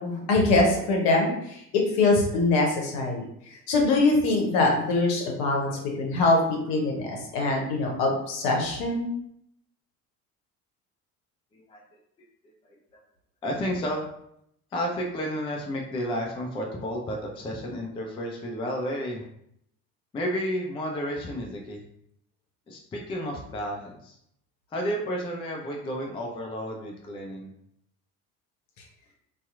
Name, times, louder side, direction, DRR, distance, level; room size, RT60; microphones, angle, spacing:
voice 1, 0.0-3.2 3.7-5.7 6.0-6.4 6.7-9.1, left 2 dB, 60° left, -1 dB, 0.9 m, -23 dB
voice 2, 13.4-14.1 14.7-19.3 20.1-21.8 22.7-24.2 24.7-27.5, equal, 15° left, 0 dB, 0.4 m, -32 dB
2.7 x 2.3 x 2.4 m, 0.74 s
figure-of-eight pair, 55°, 43 cm